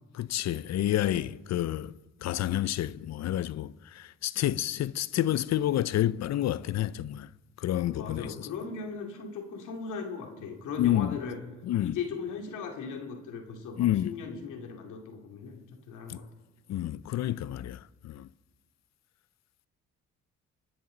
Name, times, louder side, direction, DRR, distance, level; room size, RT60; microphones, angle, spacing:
voice 1, 0.2-1.9 2.2-3.7 4.2-7.3 7.6-8.3 10.8-11.1 11.7-12.0 13.8-14.1 16.7-17.8, left 13 dB, 60° left, 0.5 m, -28 dB
voice 2, 7.9-11.4 11.8-16.2, left 5 dB, 80° left, 2.5 m, -38 dB
26.5 x 10.0 x 3.9 m
cardioid pair, 90°, 30 cm